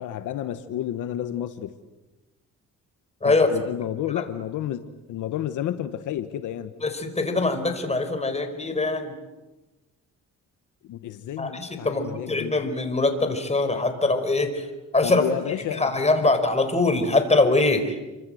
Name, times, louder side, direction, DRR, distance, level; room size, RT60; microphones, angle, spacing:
voice 1, 0.0-1.7 3.2-6.7 10.8-12.6 15.0-15.9 16.2-16.3, left 11 dB, 80° left, 10 dB, 1.4 m, -31 dB
voice 2, 6.8-9.1 11.4-14.7 14.9-15.2 15.7-17.9, left 2 dB, 20° left, 7 dB, 5.0 m, -23 dB
29.0 x 25.5 x 8.0 m, 1.1 s
cardioid pair, 90°, 30 cm